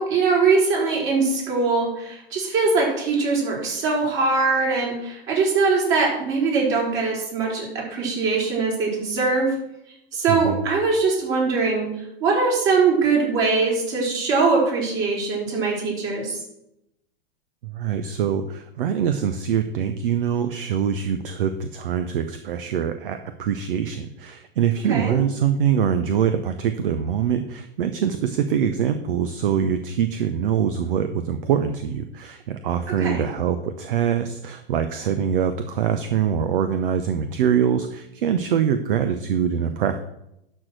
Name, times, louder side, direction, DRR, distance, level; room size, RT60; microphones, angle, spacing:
voice 1, 0.0-9.5 10.1-11.9 12.2-16.4 24.9-25.2 33.0-33.2, right 4 dB, 45° right, -3 dB, 4.4 m, -22 dB
voice 2, 10.3-10.6 17.6-40.0, right 8 dB, 65° right, 10 dB, 0.8 m, -24 dB
12.0 x 4.5 x 6.2 m, 0.82 s
figure-of-eight pair, 95°, 30 cm